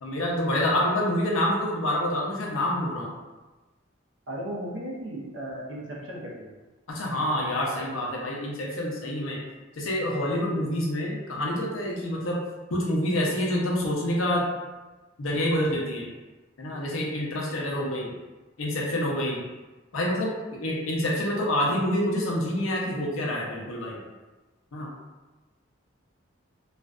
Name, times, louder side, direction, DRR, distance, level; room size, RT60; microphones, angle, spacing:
voice 1, 0.0-3.1 6.9-9.4 9.8-12.4 12.7-14.5 15.2-16.1 16.6-18.1 18.6-19.4 19.9-24.0 24.7-24.9, left 1 dB, 85° left, -3 dB, 0.6 m, -27 dB
voice 2, 4.3-6.5, right 1 dB, 65° right, -3 dB, 0.6 m, -35 dB
2.4 x 2.2 x 2.4 m, 1.2 s
head